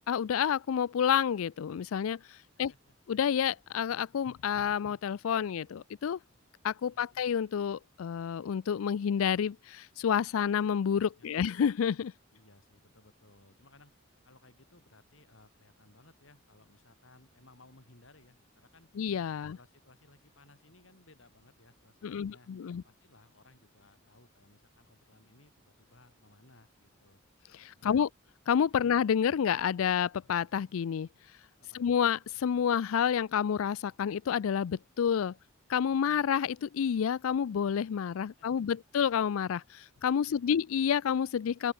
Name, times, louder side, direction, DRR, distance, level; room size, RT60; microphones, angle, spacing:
voice 1, 0.1-2.2 2.6-2.7 3.1-6.2 6.6-12.1 19.0-19.6 22.0-22.8 27.6-28.1 28.5-31.1 31.7-35.3 35.7-41.7, left 8 dB, 85° left, 0.4 m, -29 dB
voice 2, 2.6-3.0 6.9-7.2 11.2-11.5 12.3-13.9 14.2-18.9 19.3-27.2 27.8-28.1 28.8-28.9 31.6-31.8 38.2-38.8 40.2-40.6, left 2 dB, 70° left, 3.8 m, -61 dB
open air
head